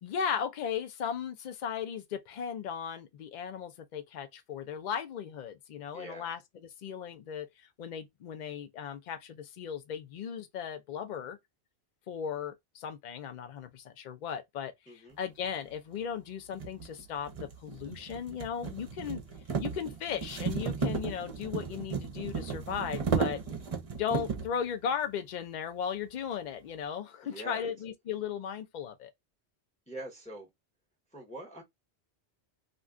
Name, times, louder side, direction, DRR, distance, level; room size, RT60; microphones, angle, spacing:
voice 1, 0.0-11.4 12.1-19.2 19.6-23.4 24.0-29.1, left 7 dB, 55° left, 0.6 m, -36 dB
voice 2, 5.9-6.3 14.9-15.2 27.2-27.7 29.9-30.5 31.1-31.6, right 1 dB, 10° left, 0.7 m, -43 dB
sound 1, 15.7-15.8 16.5-24.6, right 5 dB, 40° right, 0.6 m, -34 dB
2.5 x 2.2 x 3.5 m
omnidirectional pair, 1.1 m